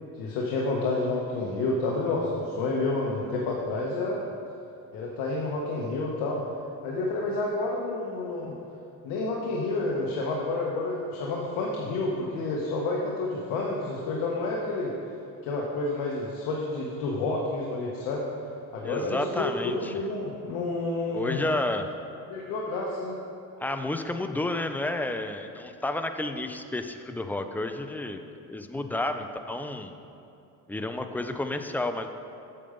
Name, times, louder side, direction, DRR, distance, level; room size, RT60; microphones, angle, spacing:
voice 1, 0.1-4.2 4.9-6.4 6.8-8.5 9.0-14.9 15.4-18.2 18.7-21.5 22.3-23.2, left 2 dB, 85° left, -2 dB, 1.2 m, -29 dB
voice 2, 18.8-19.9 21.1-21.9 23.6-29.9 30.7-32.1, left 2 dB, 5° left, 7 dB, 0.3 m, -31 dB
8.6 x 6.9 x 5.1 m, 2.7 s
cardioid pair, 125°, 35 cm